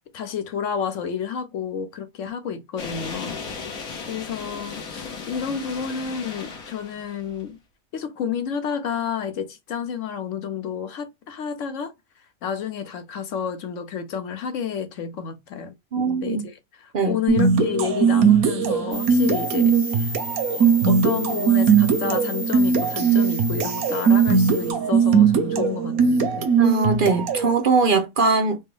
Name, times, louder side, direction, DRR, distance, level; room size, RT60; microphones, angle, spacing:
voice 1, 0.1-7.6 7.9-11.9 12.4-20.2 20.5-26.5, left 7 dB, 65° left, 1.0 m, -30 dB
sound 1, 2.8-7.4, left 5 dB, 85° left, 1.6 m, -36 dB
voice 2, 15.9-16.4 16.9-17.2 26.6-28.6, right 4 dB, 55° right, 0.6 m, -21 dB
sound 2, 17.3-27.5, right 6 dB, 85° right, 1.3 m, -19 dB
sound 3, 18.9-24.7, right 1 dB, 15° right, 0.5 m, -33 dB
4.4 x 2.2 x 3.3 m
omnidirectional pair, 1.5 m